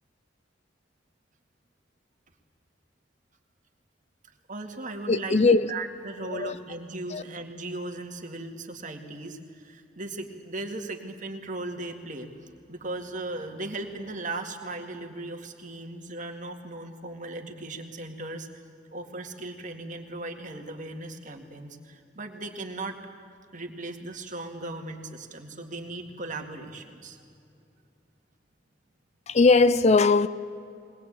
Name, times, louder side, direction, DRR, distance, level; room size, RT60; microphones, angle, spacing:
voice 1, 4.5-5.4 5.7-18.5 18.9-23.0 23.5-27.2, right 2 dB, 45° right, 2.0 m, -37 dB
voice 2, 5.1-5.7 6.3-6.5 7.1-7.2 29.3-30.3, left 3 dB, 35° left, 0.5 m, -20 dB
21.0 x 20.0 x 8.7 m
head